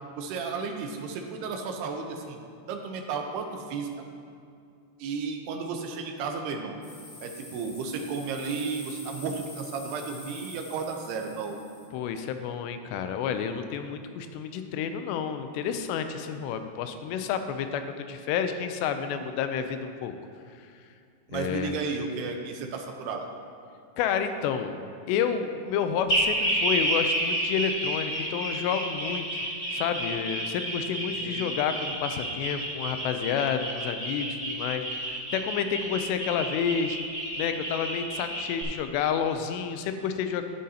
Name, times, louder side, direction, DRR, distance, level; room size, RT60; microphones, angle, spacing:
voice 1, 0.2-2.4 2.7-3.9 5.0-6.8 7.2-11.6 21.3-23.3 31.2-31.4, right 5 dB, 80° right, 3 dB, 2.8 m, -33 dB
sound 1, 6.8-11.8, left 2 dB, 65° left, 4.5 m, -46 dB
voice 2, 11.9-20.1 21.3-21.8 24.0-29.3 29.7-37.0 37.4-40.4, left 7 dB, 90° left, 8 dB, 2.8 m, -30 dB
sound 2, 26.1-38.6, right 1 dB, 20° left, 1.9 m, -30 dB
11.0 x 10.5 x 2.8 m, 2.4 s
omnidirectional pair, 4.8 m